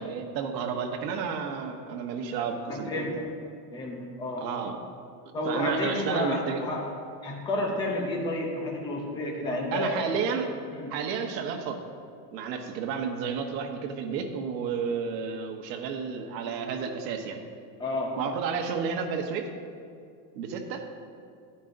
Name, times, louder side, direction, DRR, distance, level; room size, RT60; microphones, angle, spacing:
voice 1, 0.0-3.1 4.4-4.8 5.5-6.6 9.7-10.5 10.9-11.8 12.3-17.4 18.1-19.5 20.3-20.9, right 6 dB, 85° right, 3 dB, 1.2 m, -31 dB
voice 2, 2.7-3.3 3.7-4.5 5.3-6.9 7.2-10.1 10.7-10.9 17.8-18.2, left 1 dB, 10° left, -1 dB, 0.5 m, -31 dB
12.0 x 9.8 x 2.6 m, 2.4 s
supercardioid pair, 175°, 49 cm